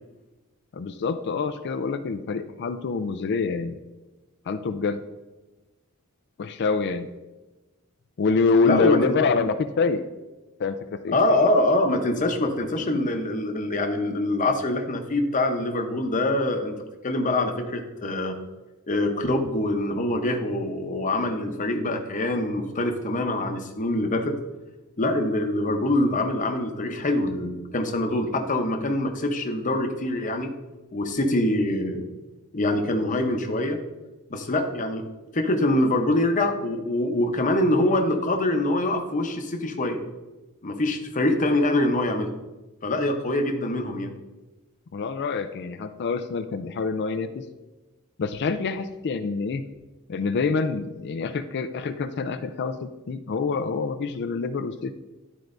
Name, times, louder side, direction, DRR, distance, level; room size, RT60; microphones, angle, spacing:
voice 1, 0.7-3.8 4.5-5.1 6.4-7.1 8.2-10.0 10.6-10.8 11.0-11.2 44.9-47.5 48.2-49.6 50.1-54.9, left 4 dB, 50° left, 10 dB, 0.4 m, -26 dB
voice 2, 8.6-9.1 11.1-16.7 17.0-18.4 18.9-24.3 25.0-30.5 30.9-32.1 32.5-33.8 34.3-35.0 35.3-40.0 40.6-42.3 42.8-44.1, left 1 dB, 35° left, 4 dB, 0.8 m, -24 dB
11.5 x 4.6 x 2.6 m, 1.1 s
head